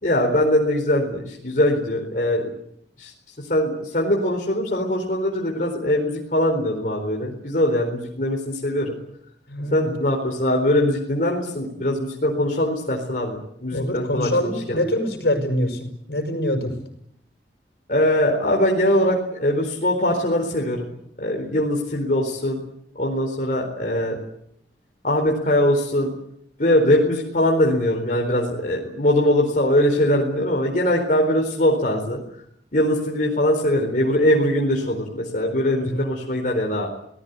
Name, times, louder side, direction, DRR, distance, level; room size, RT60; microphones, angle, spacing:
voice 1, 0.0-2.5 3.0-3.1 3.4-8.9 9.7-14.8 17.9-20.9 21.2-22.6 22.9-24.2 25.0-26.1 26.6-32.2 32.7-36.9, left 1 dB, 50° left, 0 dB, 4.3 m, -21 dB
voice 2, 9.5-9.9 13.7-16.7 35.7-36.0, left 1 dB, 70° left, 6 dB, 6.3 m, -25 dB
28.0 x 19.0 x 8.3 m, 0.73 s
head